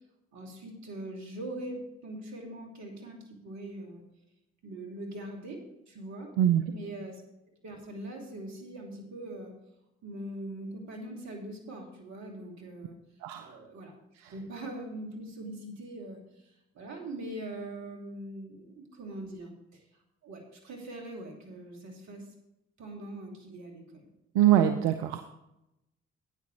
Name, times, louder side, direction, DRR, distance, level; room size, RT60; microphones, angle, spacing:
voice 1, 0.3-4.0 4.6-5.6 5.9-6.3 6.7-7.2 7.6-9.5 10.0-13.0 13.4-13.9 14.3-19.8 20.2-22.3 22.8-24.1, right 1 dB, 60° right, 1 dB, 2.8 m, -42 dB
voice 2, 13.2-13.5 14.2-14.3 24.3-25.2, right 11 dB, 85° right, 8 dB, 0.6 m, -23 dB
12.5 x 9.4 x 3.3 m, 0.87 s
hypercardioid pair, 40°, 31 cm